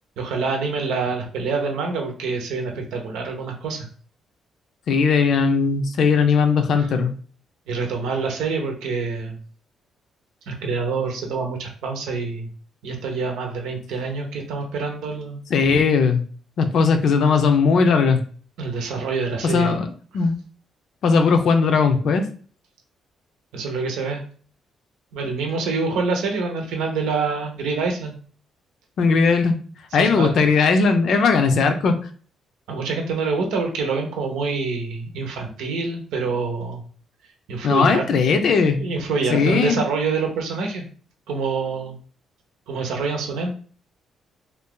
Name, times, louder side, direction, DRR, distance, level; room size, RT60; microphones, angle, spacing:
voice 1, 0.2-3.9 6.7-6.9 7.7-9.4 10.5-12.5 12.8-15.4 18.6-19.8 23.5-24.2 25.1-28.2 30.0-30.3 32.7-36.8 37.5-38.0 38.7-40.9 41.3-42.0 42.7-43.5, right 4 dB, 90° right, 2 dB, 0.8 m, -26 dB
voice 2, 4.9-7.1 15.5-16.2 16.6-18.2 19.4-19.9 20.1-20.4 21.0-22.3 29.0-29.6 29.9-32.1 37.6-38.8 39.3-39.8, left 5 dB, 65° left, 7 dB, 0.5 m, -18 dB
2.6 x 2.4 x 3.7 m, 0.44 s
cardioid pair, 90°, 0 cm